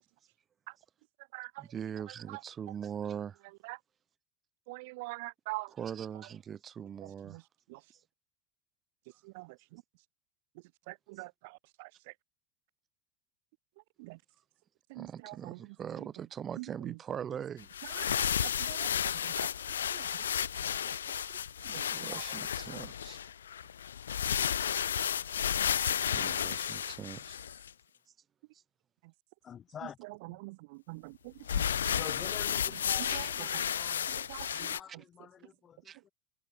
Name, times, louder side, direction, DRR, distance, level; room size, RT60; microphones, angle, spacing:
voice 1, 1.6-3.4 5.7-7.4 15.0-17.7 18.4-18.6 21.6-23.2 26.1-27.4 33.1-33.2 35.8-36.0, right 8 dB, 30° right, 4.4 m, -41 dB
voice 2, 4.7-5.7 9.4-9.5 11.2-11.3 15.0-15.3 18.1-18.9 19.4-19.5 19.9-20.0 31.5-31.6 34.3-34.4, right 25 dB, 65° right, 0.4 m, -41 dB
sound 1, 17.6-27.7 31.5-34.8, left 8 dB, 85° left, 0.5 m, -33 dB
voice 3, 29.4-30.0 30.3-30.4 31.9-34.1 34.5-36.1, left 9 dB, 35° left, 7.3 m, -47 dB
hypercardioid pair, 85°, 0 cm